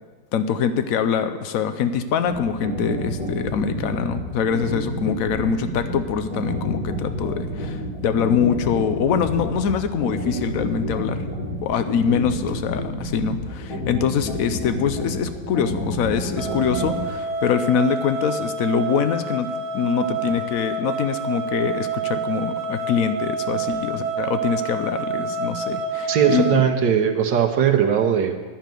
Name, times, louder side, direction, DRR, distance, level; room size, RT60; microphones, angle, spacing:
voice 1, 0.3-11.2 11.6-19.5 19.7-26.6, left 7 dB, 70° left, 10 dB, 0.8 m, -24 dB
sound 1, 2.3-17.0, left 1 dB, 85° left, 4.0 m, -29 dB
sound 2, 16.4-26.6, right 4 dB, 85° right, 1.9 m, -28 dB
voice 2, 26.1-28.4, right 8 dB, 65° right, 5 dB, 1.4 m, -19 dB
10.5 x 6.6 x 9.0 m, 1.4 s
omnidirectional pair, 2.1 m